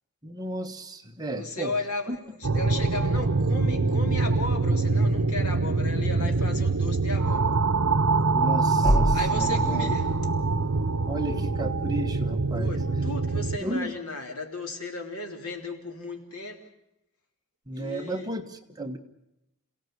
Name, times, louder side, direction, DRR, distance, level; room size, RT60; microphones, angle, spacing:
voice 1, 0.2-1.7 2.1-2.2 8.3-9.9 11.1-12.8 13.6-13.9 17.7-19.0, right 1 dB, 15° right, 4 dB, 1.4 m, -33 dB
voice 2, 1.3-7.5 9.1-10.1 12.5-16.6 17.7-18.3, left 2 dB, 80° left, 3 dB, 3.6 m, -35 dB
sound 1, 2.4-13.6, right 3 dB, 75° right, 0.9 m, -24 dB
sound 2, 8.8-13.5, equal, 5° left, 1.3 m, -31 dB
28.0 x 17.0 x 8.0 m, 0.88 s
head